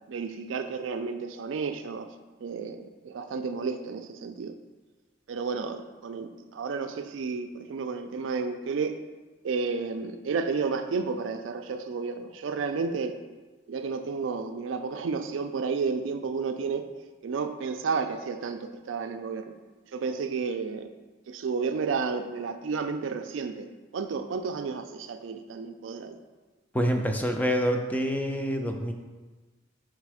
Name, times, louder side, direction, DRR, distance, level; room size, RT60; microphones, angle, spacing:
voice 1, 0.1-2.1 2.4-4.6 5.3-9.0 9.4-13.2 13.7-16.9 17.2-19.5 19.9-20.9 21.3-26.2, right 5 dB, 75° right, 7 dB, 0.4 m, -32 dB
voice 2, 26.7-28.9, equal, 10° left, 4 dB, 0.4 m, -26 dB
5.1 x 4.0 x 4.8 m, 1.3 s
head